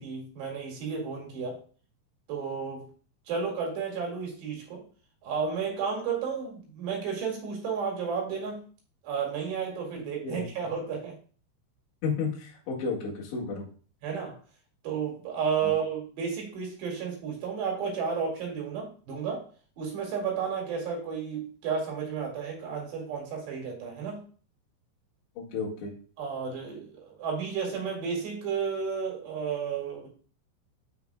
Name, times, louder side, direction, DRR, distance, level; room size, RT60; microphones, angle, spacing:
voice 1, 0.0-1.6 2.3-2.9 3.3-4.8 5.2-8.6 9.0-11.1 14.0-14.4 14.8-19.5 19.8-24.2 26.2-30.1, right 6 dB, 70° right, 0 dB, 4.3 m, -32 dB
voice 2, 12.0-13.6 15.6-15.7 25.5-25.9, left 5 dB, 75° left, -3 dB, 4.1 m, -32 dB
12.5 x 5.8 x 2.3 m, 0.40 s
omnidirectional pair, 5.3 m